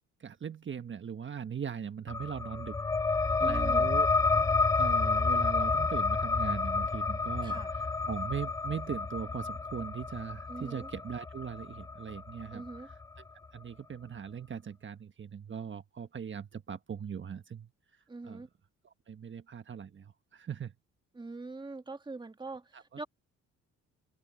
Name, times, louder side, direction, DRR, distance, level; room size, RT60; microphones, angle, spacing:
voice 1, 0.2-2.8 3.4-4.1 4.8-13.2 13.5-17.7 18.2-18.4 18.8-20.7 22.7-23.0, right 7 dB, 40° right, 1.4 m, -40 dB
sound 1, 2.1-13.2, left 4 dB, 10° left, 0.3 m, -30 dB
voice 2, 3.4-3.9 7.4-7.7 10.5-10.9 12.5-12.9 18.1-18.5 21.1-23.0, right 3 dB, 15° right, 1.6 m, -43 dB
open air
cardioid pair, 90°, 30 cm